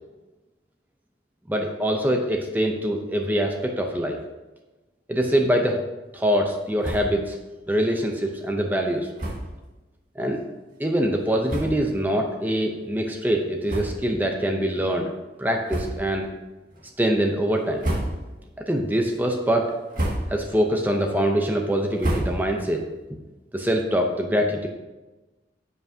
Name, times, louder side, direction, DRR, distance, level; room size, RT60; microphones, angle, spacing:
voice 1, 1.5-4.2 5.1-5.8 6.1-7.4 7.7-9.1 10.2-10.4 10.8-15.1 15.4-16.3 17.0-17.8 18.7-19.7 20.3-22.8 23.5-24.7, equal, 10° right, 2 dB, 0.6 m, -24 dB
sound 1, 6.8-7.3 7.6-7.7 8.0-8.1 9.1-9.6 10.3-10.4 11.1-11.2 11.4-12.0 12.5-12.7 13.6-14.3 14.6-14.8 15.6-16.2 16.7-17.1 17.6-18.5 18.9-19.3 19.7-20.6 20.9-22.8, right 1 dB, 45° right, 2.1 m, -31 dB
14.0 x 5.7 x 2.8 m, 1.1 s
head